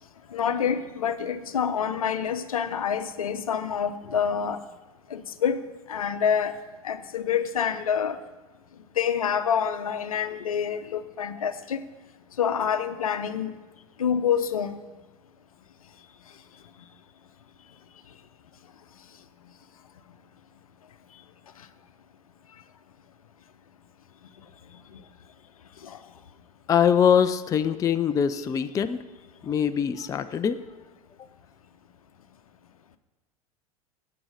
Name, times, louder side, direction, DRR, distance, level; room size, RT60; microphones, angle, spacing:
voice 1, 0.3-4.6 5.1-5.6 5.9-6.5 6.8-8.2 9.0-11.8 12.4-13.5 14.0-14.8 25.8-26.0, left 7 dB, 70° left, 12 dB, 0.8 m, -27 dB
voice 2, 26.7-29.0 29.4-30.6, left 8 dB, 20° left, 12 dB, 0.4 m, -23 dB
17.0 x 7.7 x 4.9 m, 1.2 s
figure-of-eight pair, 80°, 19 cm